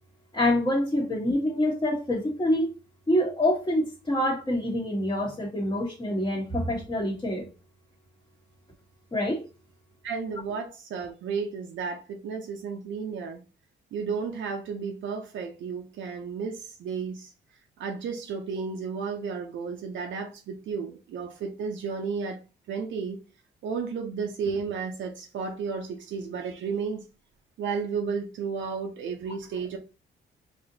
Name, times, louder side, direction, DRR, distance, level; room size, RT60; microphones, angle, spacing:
voice 1, 0.3-2.7 3.1-7.5 9.1-9.4, left 1 dB, 20° left, 1.2 m, -26 dB
voice 2, 10.0-13.4 13.9-17.3 17.8-22.4 22.7-23.2 23.6-27.0 27.6-29.8, right 5 dB, 70° right, 0.6 m, -33 dB
4.1 x 2.8 x 2.7 m
cardioid pair, 90°, 20 cm